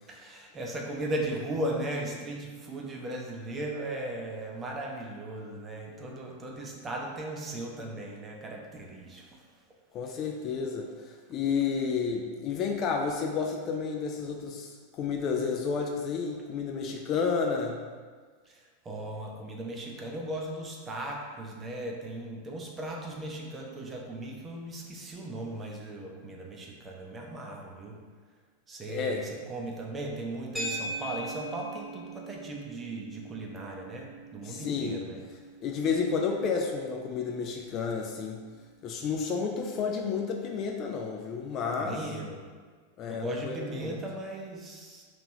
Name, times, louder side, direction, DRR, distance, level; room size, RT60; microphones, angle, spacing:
voice 1, 0.1-9.4 10.0-10.2 18.5-28.0 28.7-35.2 41.8-42.4 43.1-45.0, right 1 dB, 20° right, 0 dB, 0.7 m, -37 dB
voice 2, 9.9-17.8 28.9-29.2 34.4-35.0 35.6-38.4 38.8-42.0 43.0-44.0, left 5 dB, 35° left, 2 dB, 0.4 m, -31 dB
sound 1, 30.6-39.0, right 1 dB, 10° left, 1.0 m, -42 dB
3.4 x 3.0 x 4.0 m, 1.5 s
figure-of-eight pair, 90°, 0 cm